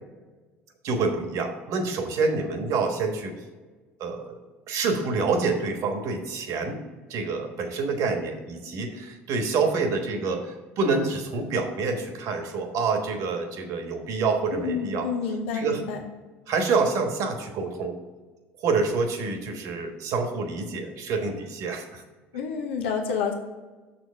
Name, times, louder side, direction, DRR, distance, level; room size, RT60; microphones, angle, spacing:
voice 1, 0.8-3.3 4.0-4.4 4.7-6.8 7.1-10.5 10.8-15.1 15.5-15.8 16.5-18.0 18.6-22.0, right 4 dB, 65° right, 5 dB, 1.3 m, -27 dB
voice 2, 14.5-16.0 22.3-23.3, left 6 dB, 90° left, 3 dB, 0.8 m, -29 dB
6.3 x 4.5 x 6.3 m, 1.3 s
supercardioid pair, 80°, 6 cm